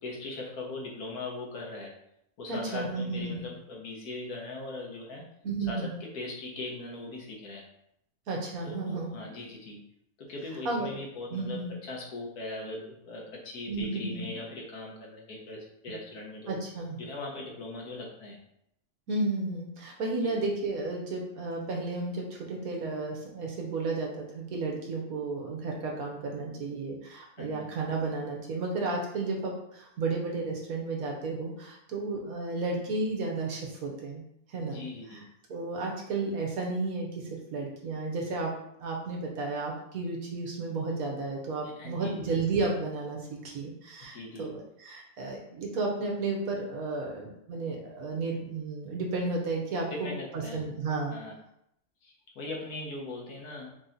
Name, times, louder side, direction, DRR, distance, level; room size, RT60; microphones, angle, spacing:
voice 1, 0.0-1.9 2.4-5.2 5.7-5.9 6.1-7.6 8.6-9.8 10.2-16.6 17.0-18.4 20.2-20.4 27.4-27.7 34.7-35.2 41.8-42.3 44.1-44.5 50.0-50.6 51.1-51.3 52.0-53.7, left 2 dB, 90° left, -1 dB, 1.6 m, -40 dB
voice 2, 2.5-3.4 5.4-6.0 8.3-9.1 10.6-10.9 11.3-11.7 13.7-14.3 16.5-17.0 19.1-34.2 34.5-38.5 38.8-51.2, right 3 dB, 70° right, 0 dB, 1.4 m, -33 dB
4.7 x 2.9 x 3.8 m, 0.76 s
omnidirectional pair, 1.6 m